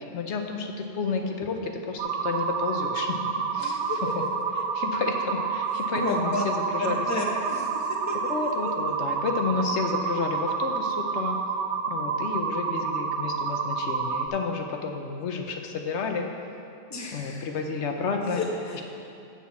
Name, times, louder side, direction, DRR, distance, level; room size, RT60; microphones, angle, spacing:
voice 1, 0.1-3.2 3.5-4.2 4.7-7.0 8.3-11.4 11.9-16.3 17.1-18.4 18.7-18.8, left 4 dB, 75° left, 3 dB, 1.0 m, -31 dB
sound 1, 2.0-14.3, right 5 dB, 85° right, 0.9 m, -29 dB
voice 2, 3.6-4.0 5.9-6.5 6.8-8.3 16.9-17.5 18.3-18.8, left 2 dB, 15° left, -1 dB, 0.8 m, -32 dB
7.2 x 6.0 x 7.0 m, 2.6 s
omnidirectional pair, 1.2 m